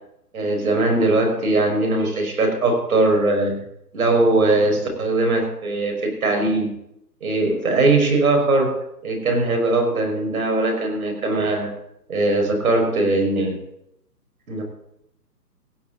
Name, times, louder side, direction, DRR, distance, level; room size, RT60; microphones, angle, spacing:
voice 1, 0.3-3.6 3.9-6.7 7.2-8.7 9.0-11.7 12.1-13.6 14.5-14.6, right 2 dB, 60° right, 2 dB, 5.7 m, -20 dB
16.5 x 6.5 x 9.3 m, 0.79 s
figure-of-eight pair, 145°, 49 cm